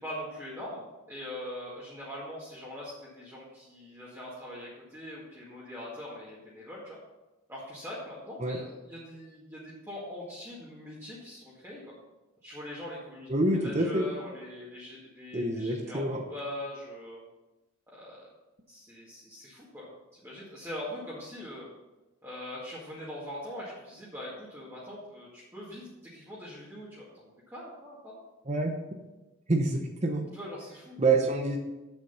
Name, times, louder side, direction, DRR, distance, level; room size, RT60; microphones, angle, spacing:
voice 1, 0.0-7.0 7.5-11.8 12.4-16.0 16.3-17.2 17.9-18.3 18.7-21.7 22.2-28.2 30.3-31.0, left 1 dB, 10° right, -8 dB, 1.9 m, -42 dB
voice 2, 13.3-14.1 15.3-16.2 28.5-28.7 29.5-30.3 31.0-31.6, right 2 dB, 35° right, 3 dB, 0.8 m, -27 dB
8.1 x 7.1 x 5.5 m, 1.1 s
head